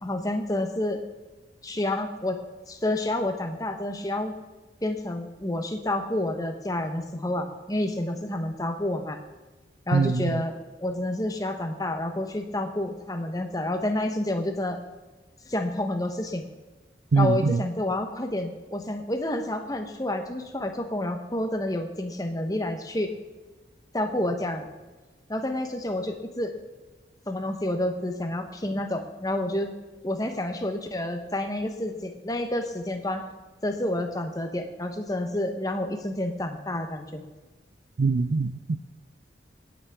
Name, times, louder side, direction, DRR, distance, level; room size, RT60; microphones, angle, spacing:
voice 1, 0.0-1.0 1.6-2.4 2.7-4.3 4.8-9.2 9.9-10.5 10.8-14.8 15.5-16.4 17.2-23.1 23.9-24.7 25.3-26.5 27.3-29.7 30.0-33.2 33.6-37.2, left 1 dB, 20° left, 5 dB, 1.0 m, -29 dB
voice 2, 9.9-10.3 17.1-17.6 38.0-38.8, right 4 dB, 65° right, 14 dB, 0.5 m, -23 dB
18.0 x 8.5 x 3.6 m, 1.2 s
head